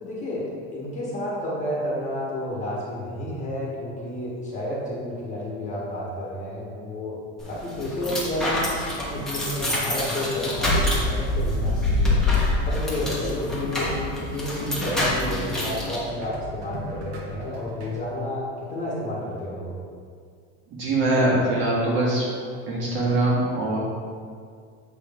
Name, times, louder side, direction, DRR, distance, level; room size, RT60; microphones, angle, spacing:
voice 1, 0.0-7.2 7.4-8.7 9.0-12.2 12.6-13.9 14.3-18.4 18.7-19.8, left 1 dB, 20° left, -5 dB, 1.3 m, -30 dB
sound 1, 7.4-16.0, left 1 dB, ahead, 1.1 m, -26 dB
sound 2, 11.5-17.9, right 1 dB, 80° right, 1.6 m, -39 dB
voice 2, 20.7-22.3 22.7-23.8, right 2 dB, 35° right, -5 dB, 1.8 m, -22 dB
7.8 x 6.0 x 3.5 m, 2.2 s
cardioid pair, 175°, 33 cm